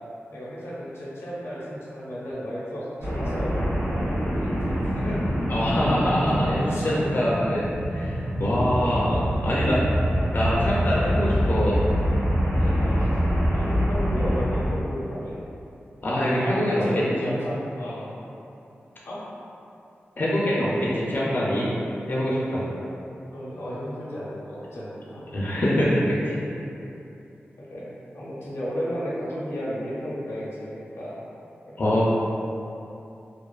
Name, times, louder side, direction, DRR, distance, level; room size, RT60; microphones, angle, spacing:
voice 1, 0.3-3.5 3.9-5.2 6.3-7.0 8.4-8.7 9.0-9.3 12.7-13.2 13.5-15.4 16.3-18.2 19.0-19.2 23.3-25.7 27.6-31.2 31.7-31.8, equal, 90° left, -8 dB, 0.6 m, -34 dB
sound 1, 3.0-14.7, equal, 80° right, 0.8 m, -25 dB
voice 2, 5.5-7.6 7.9-9.1 9.4-9.9 10.3-11.8 12.6-12.7 16.0-16.8 17.2-17.4 20.2-21.7 22.1-22.6 25.3-26.4 31.8-32.1, equal, 45° left, -7 dB, 0.4 m, -24 dB
2.4 x 2.3 x 2.3 m, 2.7 s
wide cardioid pair, 90°, 4 cm